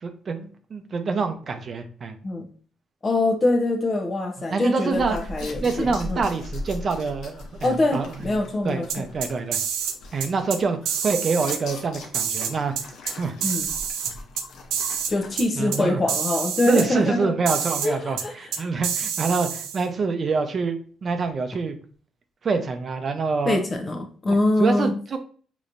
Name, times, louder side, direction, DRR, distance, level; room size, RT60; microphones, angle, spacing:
voice 1, 0.0-2.2 4.5-5.2 5.6-8.1 8.6-9.6 10.1-13.5 15.6-16.0 16.7-21.7 22.4-23.6 24.3-25.2, right 4 dB, 45° right, 0.6 m, -26 dB
voice 2, 3.0-6.2 7.6-9.1 13.4-13.7 15.1-17.3 17.8-18.5 23.5-24.9, left 2 dB, 35° left, 0.9 m, -24 dB
sound 1, 4.9-15.4, left 2 dB, 75° left, 0.8 m, -40 dB
sound 2, 8.9-9.9 10.2-10.6 10.9-11.6 12.1-13.1 13.4-14.4 14.7-15.1 15.4-15.5 15.7-15.8 16.1-16.8 17.5-17.9 18.2-18.3 18.5-19.8, right 8 dB, 85° right, 0.5 m, -27 dB
5.0 x 3.0 x 2.6 m
cardioid pair, 90°, 0 cm